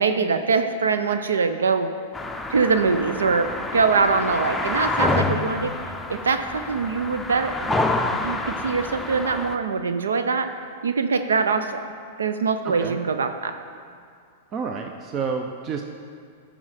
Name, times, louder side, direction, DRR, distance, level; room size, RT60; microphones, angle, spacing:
voice 1, 0.0-1.9 2.5-5.7 6.1-7.7 8.2-10.5 10.8-11.8 12.2-13.5, right 5 dB, 85° right, 8 dB, 0.4 m, -23 dB
sound 1, 2.1-9.6, left 2 dB, 10° left, 0.6 m, -27 dB
voice 2, 12.6-13.0 14.5-15.8, right 5 dB, 35° right, 4 dB, 0.5 m, -29 dB
11.0 x 5.0 x 4.9 m, 2.3 s
hypercardioid pair, 110°, 0 cm